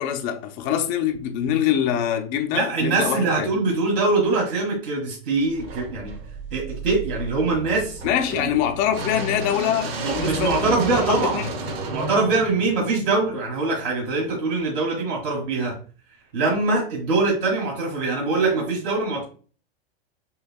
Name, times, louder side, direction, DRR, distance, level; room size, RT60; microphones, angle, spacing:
voice 1, 0.0-3.5 8.0-11.0 11.3-11.5, left 9 dB, 25° left, 0.4 m, -24 dB
voice 2, 2.5-6.1 6.5-8.0 8.4-8.5 10.0-11.4 11.9-15.8 16.3-19.2, right 3 dB, 50° right, 1.5 m, -23 dB
sound 1, 5.5-13.6, right 3 dB, 70° right, 1.3 m, -32 dB
6.2 x 2.8 x 2.2 m
supercardioid pair, 155°, 32 cm